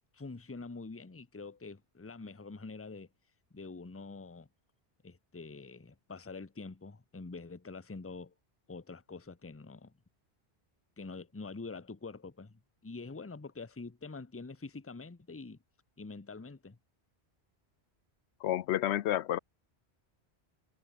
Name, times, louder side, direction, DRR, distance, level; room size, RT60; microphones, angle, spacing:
voice 1, 0.1-3.1 3.5-4.5 5.0-8.3 8.7-9.9 11.0-15.6 16.0-16.8, left 3 dB, 15° left, 0.7 m, -45 dB
voice 2, 18.4-19.4, left 12 dB, 85° left, 0.9 m, -30 dB
omnidirectional pair, 1.1 m